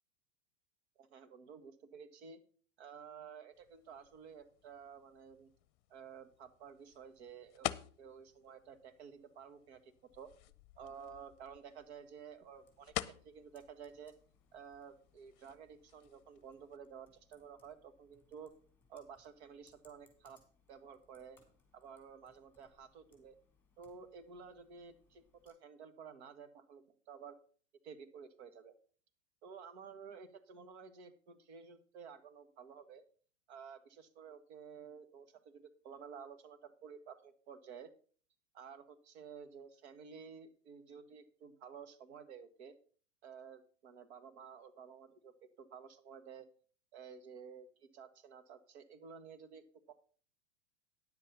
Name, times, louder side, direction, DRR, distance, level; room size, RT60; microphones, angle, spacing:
voice 1, 1.0-2.4 2.8-5.5 5.9-7.7 8.0-10.3 10.8-14.1 14.5-18.5 18.9-20.4 20.7-21.4 21.7-23.3 23.8-27.4 27.8-28.7 29.4-33.0 33.5-37.9 38.5-42.7 43.2-46.5 46.9-49.9, right 6 dB, 65° right, 10 dB, 1.7 m, -53 dB
sound 1, 3.5-16.8, left 17 dB, 45° left, 0.7 m, -49 dB
Computer keyboard, 12.5-25.5, left 4 dB, 5° left, 3.7 m, -73 dB
10.0 x 7.6 x 5.6 m, 0.42 s
hypercardioid pair, 110°, 36 cm